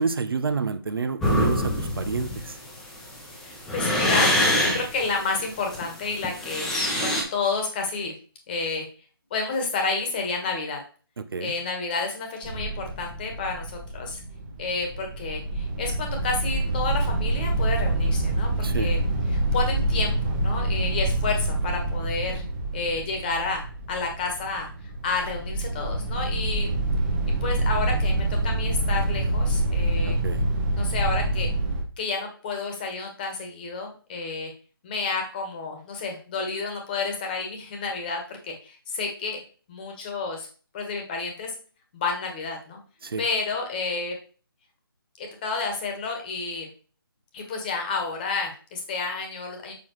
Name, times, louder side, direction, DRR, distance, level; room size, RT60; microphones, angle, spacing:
voice 1, 0.0-2.6 11.2-11.5 18.6-18.9 30.0-30.5 43.0-43.2, right 4 dB, 70° right, 0.7 m, -29 dB
sound 1, 1.2-7.2, left 1 dB, 5° left, 0.8 m, -24 dB
voice 2, 3.3-4.4 4.7-8.1 8.5-8.9 9.3-10.8 11.4-14.2 14.6-19.0 19.3-22.4 22.7-24.7 25.0-26.7 27.4-30.2 30.8-31.5 32.0-34.5 34.8-39.4 39.7-40.5 40.7-41.6 41.9-42.8 43.2-44.1 45.2-46.7 47.3-49.7, left 4 dB, 20° left, 1.4 m, -30 dB
sound 2, 12.4-31.8, right 1 dB, 20° right, 1.1 m, -26 dB
6.9 x 5.7 x 3.1 m
figure-of-eight pair, 165°, 13 cm